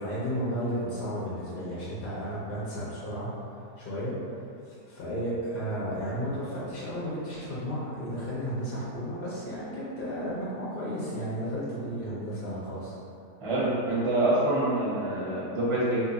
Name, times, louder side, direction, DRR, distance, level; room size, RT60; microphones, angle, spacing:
voice 1, 0.0-3.3 3.8-4.1 4.7-12.9, equal, 60° left, -8 dB, 0.6 m, -33 dB
voice 2, 13.4-16.0, right 1 dB, 30° right, -9 dB, 0.6 m, -26 dB
2.7 x 2.5 x 3.8 m, 2.5 s
omnidirectional pair, 1.7 m